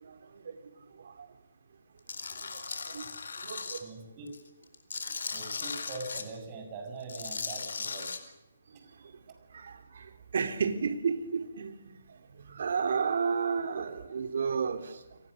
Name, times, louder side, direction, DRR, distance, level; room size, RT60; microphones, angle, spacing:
Tools, 2.1-3.8 4.3-6.2 7.0-8.2, left 4 dB, 65° left, 4.1 m, -37 dB
voice 1, 2.5-3.1 3.4-3.9 9.5-10.1 10.3-11.9 12.5-15.0, right 5 dB, 60° right, 3.6 m, -32 dB
voice 2, 3.8-4.3 5.3-8.1, right 3 dB, 30° right, 6.6 m, -42 dB
30.0 x 23.0 x 6.7 m
figure-of-eight pair, 145°, 0 cm